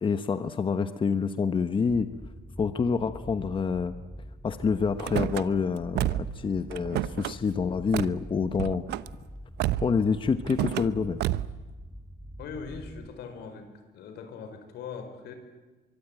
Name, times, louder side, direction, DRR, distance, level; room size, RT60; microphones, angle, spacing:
voice 1, 0.0-2.1 2.6-3.9 4.4-8.8 9.8-11.2, left 5 dB, 30° left, 11 dB, 1.1 m, -27 dB
sound 1, 1.9-13.1, equal, ahead, 1.3 m, -44 dB
Car / Slam, 5.0-5.4 5.9-6.4 6.7-7.3 7.9-8.2 8.5-9.1 9.6-10.0 10.5-10.9 11.2-11.6, right 14 dB, 80° right, 0.8 m, -29 dB
voice 2, 12.4-13.7 13.9-15.3, left 5 dB, 80° left, 8 dB, 4.8 m, -40 dB
24.0 x 23.5 x 9.0 m, 1.2 s
cardioid pair, 110°, 17 cm